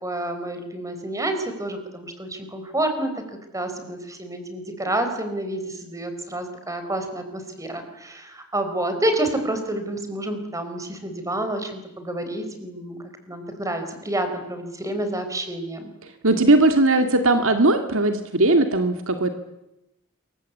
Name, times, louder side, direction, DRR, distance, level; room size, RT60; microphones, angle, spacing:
voice 1, 0.0-3.2 3.5-13.0 13.3-15.9, right 1 dB, 15° right, 7 dB, 4.7 m, -29 dB
voice 2, 16.2-19.3, right 2 dB, 60° right, 7 dB, 2.2 m, -18 dB
27.5 x 24.0 x 8.5 m, 0.90 s
head